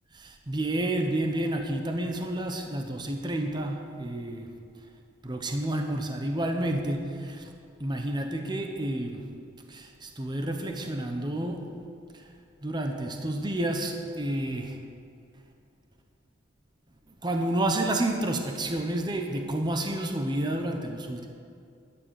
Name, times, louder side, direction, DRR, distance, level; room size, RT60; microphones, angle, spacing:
voice 1, 0.2-4.5 5.2-7.5 7.8-9.3 9.7-11.7 12.1-12.3 12.6-14.8 17.1-21.3, right 1 dB, 20° right, 4 dB, 0.9 m, -30 dB
12.5 x 9.9 x 6.5 m, 2.4 s
head